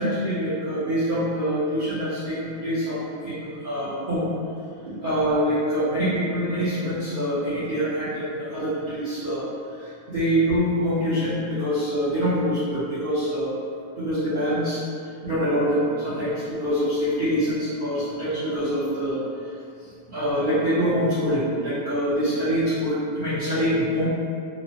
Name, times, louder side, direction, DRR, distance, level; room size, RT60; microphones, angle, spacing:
voice 1, 0.0-4.3 5.0-9.4 9.8-13.5 14.0-14.8 15.2-19.2 20.1-24.1, equal, 45° right, -15 dB, 0.7 m, -25 dB
3.0 x 2.1 x 2.7 m, 2.4 s
omnidirectional pair, 1.6 m